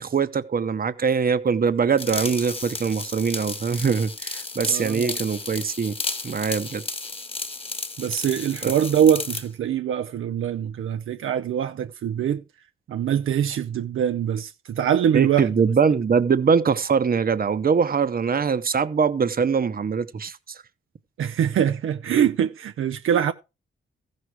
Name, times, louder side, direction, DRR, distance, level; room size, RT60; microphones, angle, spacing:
voice 1, 0.0-5.9 6.2-6.8 8.6-8.7 15.1-20.4, right 6 dB, 45° right, 1.0 m, -22 dB
sound 1, 2.0-9.5, left 3 dB, 25° left, 1.5 m, -33 dB
voice 2, 4.7-5.2 8.0-12.4 12.9-15.7 21.2-23.3, right 9 dB, 75° right, 0.6 m, -23 dB
14.5 x 6.4 x 4.8 m
cardioid pair, 100°, 21 cm